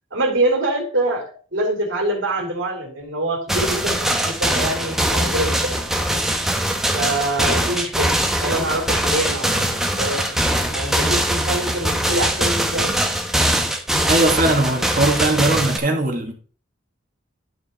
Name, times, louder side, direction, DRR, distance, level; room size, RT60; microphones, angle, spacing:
voice 1, 0.1-5.7 6.9-10.4 10.7-12.9, right 1 dB, 55° right, 2.8 m, -25 dB
sound 1, 3.5-15.8, right 1 dB, ahead, 0.8 m, -22 dB
voice 2, 14.1-16.3, right 2 dB, 40° right, 1.6 m, -19 dB
11.0 x 4.9 x 4.1 m
head